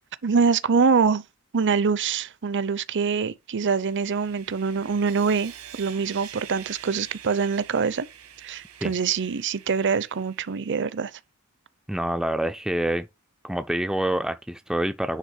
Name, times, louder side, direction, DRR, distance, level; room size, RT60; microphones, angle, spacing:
voice 1, 0.2-1.2 1.5-8.1 8.4-11.1, right 5 dB, 55° right, 0.6 m, -24 dB
Sawing, 3.5-11.0, right 9 dB, 85° right, 1.6 m, -46 dB
voice 2, 11.9-13.1 13.4-15.2, right 1 dB, 5° right, 0.3 m, -26 dB
9.9 x 3.4 x 4.6 m
head